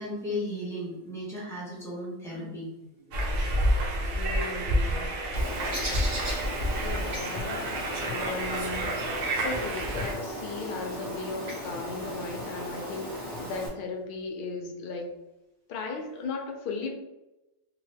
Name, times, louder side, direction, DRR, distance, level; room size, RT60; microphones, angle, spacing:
voice 1, 0.0-3.6, left 1 dB, ahead, -7 dB, 0.9 m, -36 dB
sound 1, 3.1-10.1, right 1 dB, 80° right, 1.0 m, -29 dB
voice 2, 4.2-5.1 6.8-7.7 8.0-9.0 9.3-15.2 15.7-16.9, left 3 dB, 65° left, 2 dB, 0.5 m, -36 dB
Bird, 5.3-13.7, equal, 65° right, 1.3 m, -36 dB
2.8 x 2.2 x 3.3 m, 0.99 s
omnidirectional pair, 1.3 m